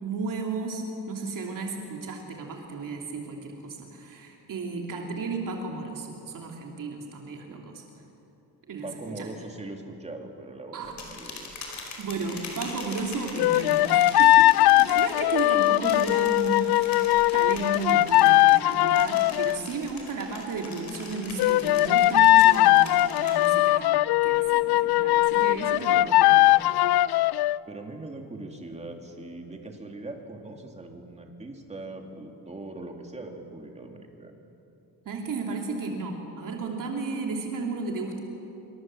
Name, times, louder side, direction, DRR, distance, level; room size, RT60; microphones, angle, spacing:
voice 1, 0.0-7.8 8.7-8.9 9.2-9.3 10.7-10.9 12.0-17.1 17.3-26.5 35.0-38.2, right 3 dB, 60° right, 1 dB, 2.8 m, -34 dB
voice 2, 8.8-11.5 27.7-34.4, right 2 dB, 15° right, 3 dB, 2.4 m, -41 dB
sound 1, 10.8-23.8 24.2-24.6 25.0-26.9, left 3 dB, 50° left, 4.7 m, -42 dB
sound 2, 13.4-19.6 21.4-27.6, left 16 dB, 90° left, 0.5 m, -20 dB
26.0 x 24.5 x 7.6 m, 3.0 s
wide cardioid pair, 170°, 37 cm